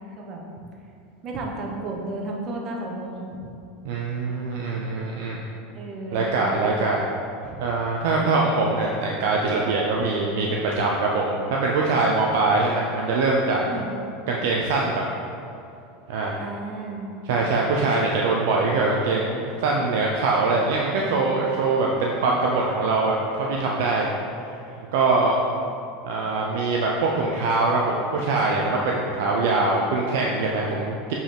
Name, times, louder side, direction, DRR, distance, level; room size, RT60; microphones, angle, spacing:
voice 1, 1.2-3.5 5.7-6.5 7.4-7.6 13.7-13.9 16.4-17.1 24.6-24.8, right 2 dB, 40° right, 0 dB, 1.2 m, -33 dB
voice 2, 3.8-5.4 6.1-7.0 7.6-13.6 14.3-15.1 16.1-16.4 17.3-24.1 24.5-24.6 24.9-25.4 26.0-31.1, right 3 dB, 60° right, -2 dB, 0.6 m, -23 dB
7.0 x 5.4 x 3.4 m, 2.6 s
figure-of-eight pair, 80°, 0 cm